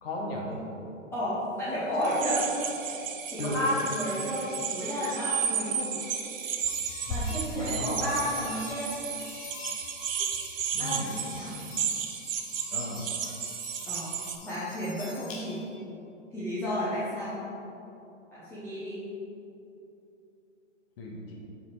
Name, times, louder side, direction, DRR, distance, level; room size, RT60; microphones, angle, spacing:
voice 1, 0.0-0.5 3.4-3.6 7.6-8.0 10.7-11.1 12.7-13.0 21.0-21.3, left 2 dB, 45° left, -1 dB, 1.6 m, -35 dB
voice 2, 1.1-2.4 2.9-3.0 3.2-6.0 7.1-9.1 10.8-11.6 13.9-14.1 14.4-15.6 16.3-17.4 18.3-19.0, equal, 5° left, -12 dB, 1.0 m, -32 dB
sound 1, 2.0-14.4, right 7 dB, 80° right, 0.8 m, -34 dB
sound 2, 6.3-15.8, left 2 dB, 30° left, 0.7 m, -42 dB
6.7 x 4.5 x 4.9 m, 2.9 s
hypercardioid pair, 140°, 39 cm